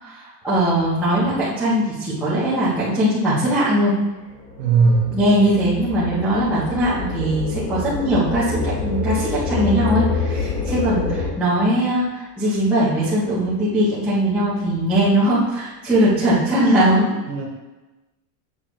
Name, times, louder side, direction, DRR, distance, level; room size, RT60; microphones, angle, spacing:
voice 1, 0.0-3.9 5.1-17.1, right 1 dB, 5° right, -12 dB, 0.5 m, -20 dB
sound 1, 4.3-11.3, left 4 dB, 20° left, 1.5 m, -26 dB
voice 2, 4.6-5.2 17.3-17.4, right 4 dB, 30° right, -2 dB, 1.4 m, -18 dB
7.9 x 6.1 x 3.0 m, 1.1 s
supercardioid pair, 180°, 49 cm